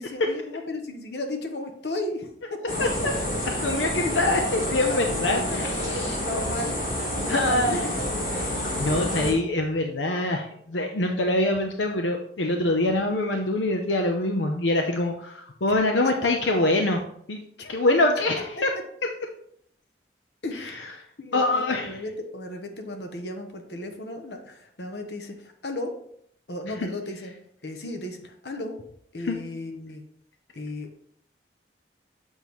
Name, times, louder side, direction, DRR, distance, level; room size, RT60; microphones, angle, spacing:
voice 1, 0.0-2.6 4.0-4.2 4.9-6.7 7.2-8.3 16.0-16.1 17.6-17.8 18.1-18.2 20.4-20.9 21.2-25.9 26.5-27.3 27.6-28.8 29.1-30.0 30.5-31.0, left 1 dB, 65° left, 6 dB, 1.0 m, -35 dB
sound 1, 2.7-9.3, left 1 dB, 45° left, 2.5 m, -28 dB
voice 2, 2.8-3.1 3.6-6.2 7.3-7.8 8.4-8.5 8.8-17.0 17.3-17.4 17.7-18.7 20.6-20.9 21.3-22.0 26.8-26.9 29.2-29.4, left 2 dB, 85° left, 4 dB, 0.7 m, -24 dB
7.3 x 5.4 x 3.1 m, 0.66 s
head